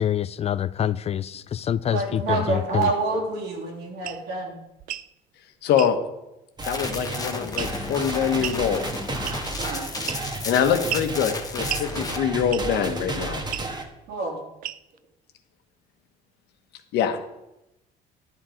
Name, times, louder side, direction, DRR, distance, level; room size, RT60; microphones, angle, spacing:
voice 1, 0.0-2.9, left 10 dB, 40° left, 17 dB, 0.4 m, -26 dB
voice 2, 1.9-4.6 9.6-9.9 14.1-14.4, right 3 dB, 80° right, 0 dB, 3.1 m, -27 dB
sound 1, 4.0-4.2 4.8-5.1 5.8-6.0 7.6-7.9 8.4-8.6 9.3-9.6 10.1-10.4 10.9-11.1 11.7-11.9 12.5-12.8 13.5-13.7 14.6-15.0, right 11 dB, 55° right, 0.5 m, -32 dB
voice 3, 5.6-6.0 6.6-8.8 10.4-13.4 16.9-17.2, left 8 dB, 80° left, 7 dB, 1.3 m, -24 dB
sound 2, 6.6-12.2, left 4 dB, 20° left, 1.3 m, -34 dB
sound 3, 6.6-13.8, right 2 dB, 25° right, 1.5 m, -32 dB
11.0 x 7.8 x 5.2 m, 0.90 s
cardioid pair, 110°, 17 cm